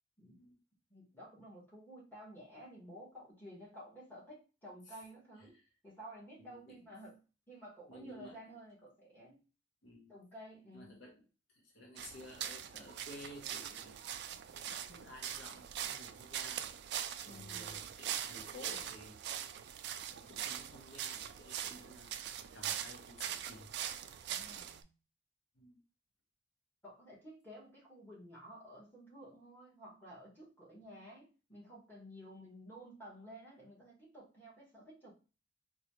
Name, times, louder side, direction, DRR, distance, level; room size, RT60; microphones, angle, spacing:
voice 1, 0.9-5.6 5.8-7.2 7.5-9.4 10.1-11.0 17.2-17.8 24.3-24.9 26.8-35.1, equal, 10° left, -5 dB, 1.4 m, -53 dB
voice 2, 6.4-6.9 7.9-8.4 9.8-10.1 10.7-11.2 11.5-14.0 14.5-16.6 17.3-19.2 20.1-23.7 25.5-25.8, left 1 dB, 65° left, 0 dB, 0.9 m, -54 dB
sound 1, 12.0-24.8, right 10 dB, 55° right, 0.3 m, -42 dB
4.0 x 2.3 x 3.0 m, 0.34 s
head